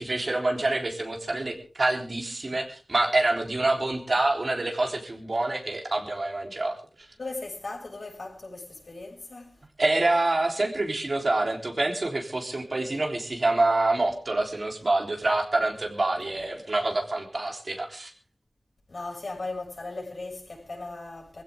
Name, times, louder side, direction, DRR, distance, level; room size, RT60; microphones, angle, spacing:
voice 1, 0.0-6.8 9.8-18.1, right 2 dB, 60° right, 3.5 m, -26 dB
voice 2, 7.2-9.6 16.3-16.5 18.9-21.4, left 2 dB, 75° left, 6.4 m, -38 dB
21.5 x 15.5 x 3.6 m
wide cardioid pair, 55°, 0 cm